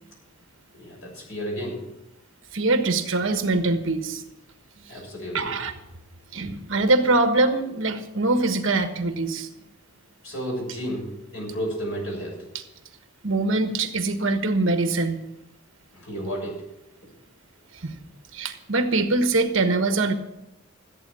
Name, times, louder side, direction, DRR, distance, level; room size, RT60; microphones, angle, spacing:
voice 1, 0.8-1.8 4.9-5.5 10.2-12.4 15.9-16.5, equal, 70° left, -1 dB, 6.8 m, -32 dB
voice 2, 2.5-4.2 5.3-5.7 6.3-9.5 13.2-15.2 17.8-17.9 18.3-20.1, right 2 dB, 60° right, 7 dB, 1.4 m, -23 dB
14.5 x 8.6 x 7.0 m, 0.91 s
head